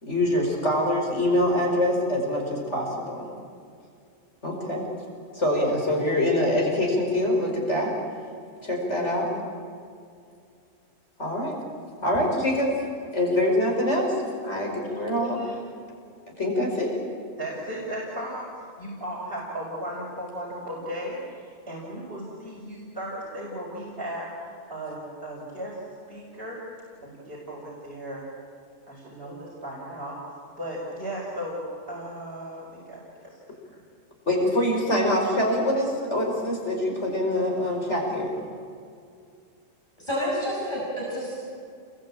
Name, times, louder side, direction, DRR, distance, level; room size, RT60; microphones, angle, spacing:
voice 1, 0.0-3.3 4.4-4.9 5.3-7.9 8.6-9.3 11.2-11.6 12.0-12.7 13.1-14.2 14.4-15.4 16.4-17.0 34.3-38.3, left 1 dB, 60° left, 0 dB, 5.1 m, -24 dB
voice 2, 17.4-25.8 26.1-26.6 27.0-28.3 28.9-33.4, equal, 45° right, -5 dB, 5.8 m, -36 dB
voice 3, 40.0-41.4, equal, 20° left, -6 dB, 6.5 m, -29 dB
29.0 x 21.5 x 8.8 m, 2.4 s
omnidirectional pair, 1.3 m